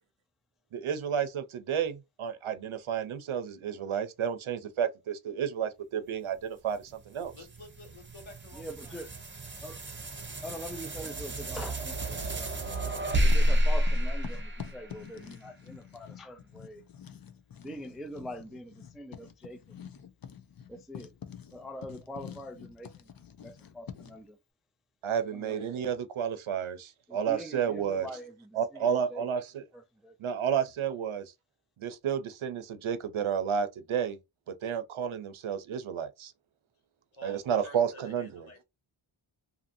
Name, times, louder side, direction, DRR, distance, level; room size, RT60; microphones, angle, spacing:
voice 1, 0.7-7.3 25.0-28.1 28.6-29.6 30.2-31.3 31.8-34.2 34.5-36.3 37.2-38.4, right 8 dB, 75° right, 0.7 m, -31 dB
sound 1, 6.7-15.3, equal, 25° right, 0.8 m, -30 dB
voice 2, 7.3-9.1 37.1-38.6, left 2 dB, 65° left, 1.7 m, -51 dB
voice 3, 8.5-9.1 9.6-9.8 10.4-12.6 13.2-16.8 17.6-19.8 20.7-21.2 21.5-23.1 23.4-24.4 25.3-25.9 27.1-29.3 29.7-30.2, equal, ahead, 0.3 m, -44 dB
Writing, 11.8-13.0 13.3-24.3, left 8 dB, 45° left, 0.6 m, -47 dB
2.7 x 2.6 x 2.5 m
wide cardioid pair, 65°, 50 cm